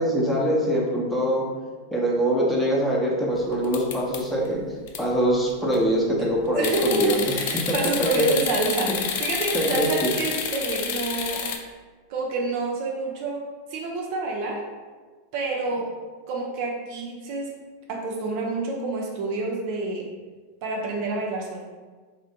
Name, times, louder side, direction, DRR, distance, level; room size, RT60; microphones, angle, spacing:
voice 1, 0.0-1.5 1.9-4.6 5.0-7.2 7.7-8.2 9.5-10.1, equal, 5° left, -4 dB, 0.7 m, -23 dB
sound 1, 3.6-4.5 4.9-5.0 5.5-5.9 6.6-11.6, left 7 dB, 55° left, 0.3 m, -29 dB
voice 2, 6.2-11.6 12.1-13.4 13.7-14.6 15.3-15.9 16.3-17.5 17.9-20.1 20.6-21.6, right 3 dB, 50° right, -1 dB, 0.5 m, -28 dB
3.3 x 2.1 x 2.6 m, 1.4 s
figure-of-eight pair, 90°, 0 cm